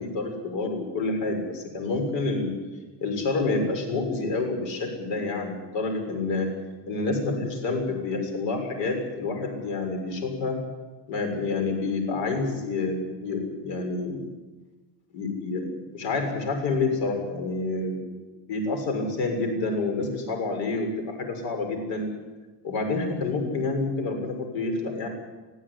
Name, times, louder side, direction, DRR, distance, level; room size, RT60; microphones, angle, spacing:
voice 1, 0.0-2.5 3.0-6.5 6.9-10.6 11.1-14.2 15.1-18.0 18.5-22.1 22.6-25.1, left 3 dB, 80° left, 4 dB, 6.8 m, -28 dB
24.0 x 16.0 x 10.0 m, 1.2 s
cardioid pair, 180°, 43 cm